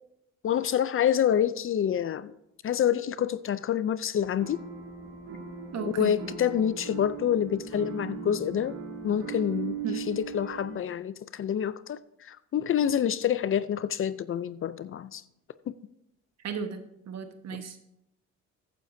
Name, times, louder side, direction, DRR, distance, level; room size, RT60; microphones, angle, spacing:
voice 1, 0.4-2.3 2.6-4.6 5.8-8.8 9.0-15.2 15.7-15.8 17.5-17.8, left 9 dB, 45° left, 0.5 m, -27 dB
sound 1, 4.2-10.8, right 6 dB, 85° right, 3.0 m, -39 dB
voice 2, 5.7-6.1 9.8-10.0 16.4-17.8, right 6 dB, 60° right, 1.4 m, -34 dB
14.0 x 9.5 x 2.7 m
cardioid pair, 90°, 30 cm